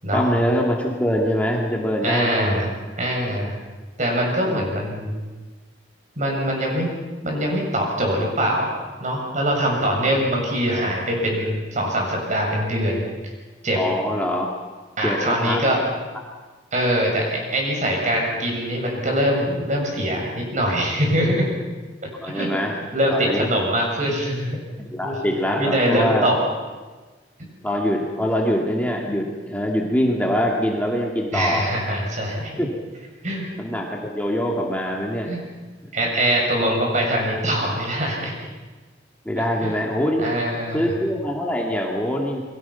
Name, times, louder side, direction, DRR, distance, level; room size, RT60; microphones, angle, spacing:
voice 1, 0.1-2.6 4.4-4.7 13.8-14.5 15.0-15.6 21.2-21.3 22.2-22.8 23.1-23.5 24.8-26.3 27.6-31.7 32.6-32.7 33.6-35.3 39.2-40.3 40.7-42.4, equal, 10° left, -1 dB, 2.4 m, -23 dB
voice 2, 2.0-3.5 4.0-5.2 6.2-6.9 7.2-8.7 9.0-13.1 13.6-13.8 15.0-15.8 16.7-21.5 22.2-22.5 22.9-24.6 25.0-25.1 25.6-26.4 31.3-32.6 33.2-33.5 35.2-35.4 35.9-38.3 39.6-39.8 40.2-40.9, equal, 45° right, 0 dB, 7.2 m, -23 dB
29.5 x 23.0 x 5.8 m, 1.3 s
head